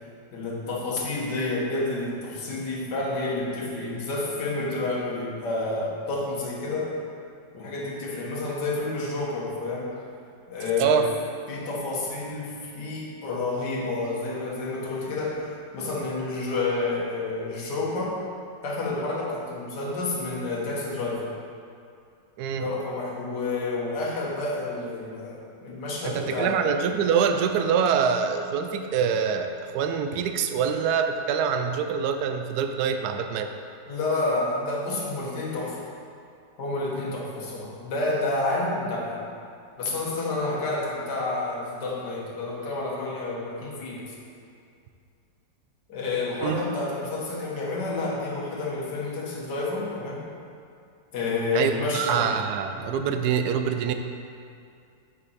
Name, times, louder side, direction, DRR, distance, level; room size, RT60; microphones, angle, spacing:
voice 1, 0.3-6.9 7.5-9.9 10.5-11.1 11.5-18.2 18.6-21.3 22.6-26.6 33.9-35.8 36.6-39.3 39.8-44.1 45.9-50.4 51.1-52.3, left 2 dB, 65° left, -4 dB, 1.9 m, -29 dB
voice 2, 22.4-22.7 26.0-33.5 46.4-46.6 51.5-53.9, right 7 dB, 70° right, 7 dB, 1.0 m, -25 dB
8.3 x 5.5 x 4.1 m, 2.4 s
omnidirectional pair, 2.0 m